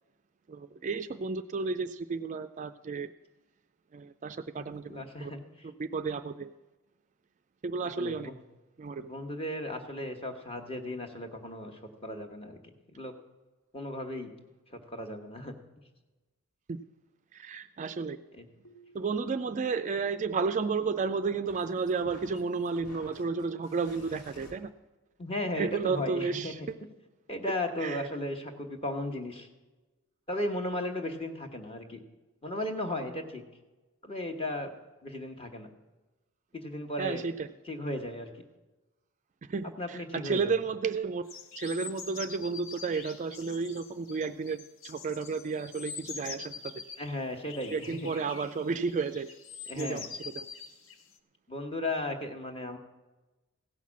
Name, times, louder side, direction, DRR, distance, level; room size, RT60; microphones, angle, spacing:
voice 1, 0.5-3.1 3.9-5.3 5.6-6.5 7.6-8.3 8.8-9.1 16.7-16.8 17.3-18.2 18.9-24.7 25.6-26.6 27.8-28.0 37.0-37.5 39.5-41.3 41.6-46.8 47.7-49.3 49.8-50.0 50.4-50.5, right 4 dB, 35° right, 9 dB, 0.3 m, -32 dB
voice 2, 4.5-5.7 7.8-8.4 9.0-13.1 13.7-14.3 14.7-15.5 18.3-18.4 25.2-26.5 27.3-29.5 30.3-32.0 32.4-33.4 34.0-34.7 35.0-35.7 36.5-37.3 37.6-38.3 39.8-40.5 47.0-48.1 49.7-50.0 51.5-52.8, left 1 dB, 25° left, 4 dB, 1.2 m, -36 dB
sound 1, 18.6-24.6, left 1 dB, 90° left, 2.0 m, -54 dB
sound 2, 41.3-47.1 47.5-51.2, left 6 dB, 60° left, 0.8 m, -45 dB
16.0 x 5.8 x 7.3 m, 1.1 s
head